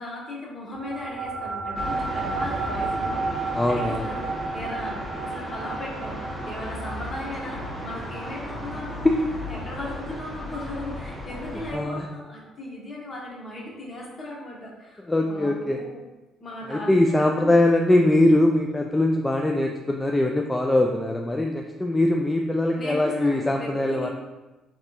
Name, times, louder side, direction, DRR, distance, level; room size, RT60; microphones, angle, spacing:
voice 1, 0.0-4.3 4.5-9.1 9.5-16.0 16.4-17.6 22.7-24.1, left 1 dB, 35° left, -3 dB, 1.2 m, -37 dB
sound 1, 0.7-11.5, right 4 dB, 50° right, 0.4 m, -33 dB
sound 2, 1.7-11.8, left 1 dB, ahead, 1.0 m, -35 dB
voice 2, 3.5-4.1 11.7-12.0 15.1-15.8 16.7-24.1, left 1 dB, 15° left, 1 dB, 0.3 m, -22 dB
4.1 x 3.0 x 2.6 m, 1.1 s
figure-of-eight pair, 50°, 0 cm